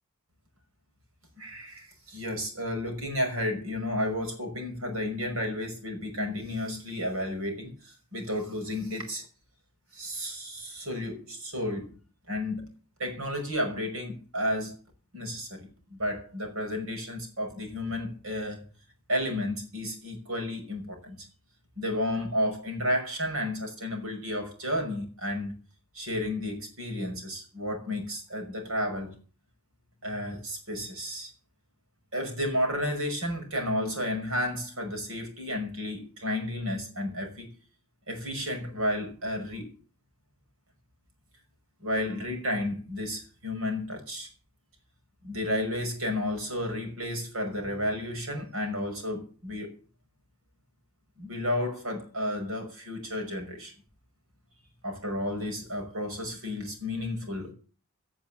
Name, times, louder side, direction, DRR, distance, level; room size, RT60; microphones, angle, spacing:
voice 1, 1.4-9.3 9.9-12.0 12.3-12.7 13.0-14.8 15.1-18.6 19.1-21.3 21.8-25.6 25.9-29.1 30.0-31.3 32.1-37.5 38.1-39.7 41.8-44.3 45.2-49.7 51.2-53.7 54.8-57.5, left 1 dB, 75° right, 5.8 m, -32 dB
17.0 x 7.4 x 7.4 m
head